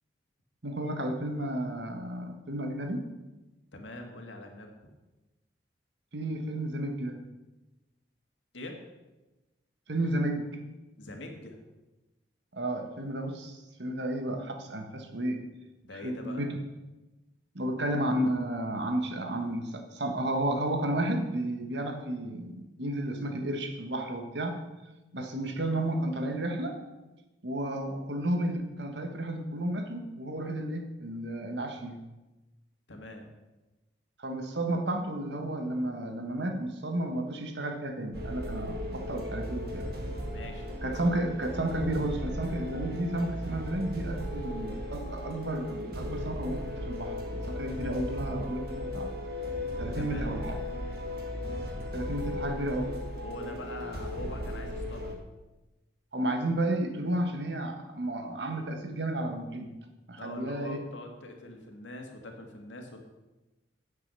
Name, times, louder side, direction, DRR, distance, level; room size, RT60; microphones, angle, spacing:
voice 1, 0.6-3.1 6.1-7.2 9.9-10.5 12.5-15.4 16.0-16.5 17.5-24.6 25.1-26.8 27.4-32.0 34.2-39.9 40.8-49.1 49.8-50.6 51.9-52.9 56.1-59.7 60.1-60.8, right 1 dB, 70° right, 5 dB, 1.5 m, -32 dB
voice 2, 3.7-4.8 8.5-8.8 11.0-11.6 15.8-16.4 32.9-33.3 40.3-40.7 50.0-50.3 53.1-55.2 60.2-63.0, left 1 dB, 90° left, 3 dB, 2.0 m, -43 dB
sound 1, 38.1-55.2, left 1 dB, 55° right, 1.6 m, -36 dB
9.5 x 7.6 x 6.8 m, 1.1 s
head